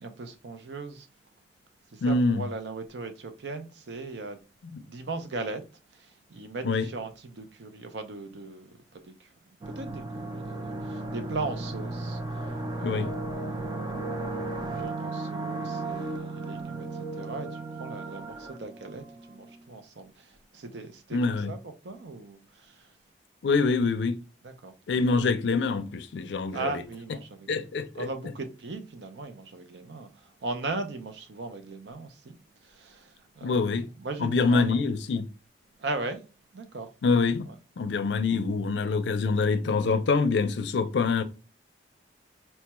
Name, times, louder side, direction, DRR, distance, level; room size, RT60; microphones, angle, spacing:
voice 1, 0.0-1.1 1.9-4.4 4.8-5.6 5.9-21.6 21.8-22.9 24.4-24.7 26.5-27.7 28.0-32.4 32.6-33.6 34.0-34.8 35.8-36.2 36.5-36.9 37.5-37.6, right 3 dB, 75° right, 0.6 m, -38 dB
voice 2, 2.0-2.4 4.7-4.8 6.6-6.9 12.8-13.1 21.1-21.5 23.4-24.2 24.9-26.8 27.5-28.1 33.4-33.9 34.2-35.3 37.0-37.5 37.8-41.2, left 4 dB, 80° left, 0.4 m, -25 dB
sound 1, 9.6-19.4, right 2 dB, 25° right, 0.4 m, -35 dB
4.4 x 2.2 x 2.9 m
head